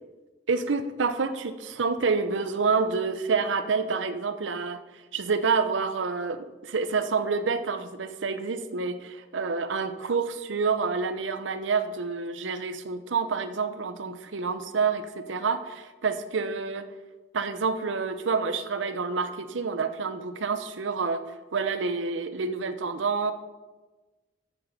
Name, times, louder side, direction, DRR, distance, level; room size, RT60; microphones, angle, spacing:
voice 1, 0.5-16.8 17.3-21.2 21.5-23.3, right 4 dB, 85° right, 11 dB, 0.7 m, -28 dB
8.8 x 6.3 x 5.2 m, 1.2 s
head